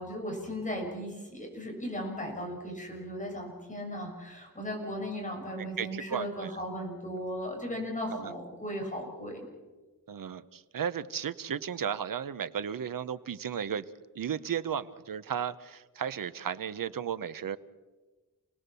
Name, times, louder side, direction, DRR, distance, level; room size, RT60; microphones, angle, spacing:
voice 1, 0.0-9.5, equal, 25° left, 0 dB, 6.9 m, -37 dB
voice 2, 5.6-6.6 8.1-8.3 10.1-13.8 14.1-17.6, right 8 dB, 85° right, 14 dB, 0.9 m, -34 dB
29.5 x 19.5 x 6.9 m, 1.3 s
wide cardioid pair, 145°, 33 cm